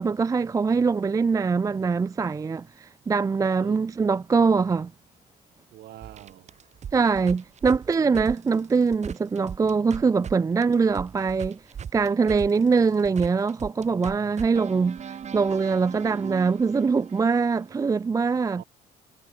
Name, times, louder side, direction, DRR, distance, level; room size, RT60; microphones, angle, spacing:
voice 1, 0.0-4.9 6.9-11.6 11.9-18.6, right 5 dB, 20° right, 0.4 m, -23 dB
voice 2, 5.7-6.5 9.8-10.3 13.8-14.3 18.5-18.6, right 14 dB, 70° right, 4.3 m, -46 dB
sound 1, 6.0-10.3 10.6-17.8, right 8 dB, 40° right, 2.4 m, -39 dB
cardioid pair, 110°, 17 cm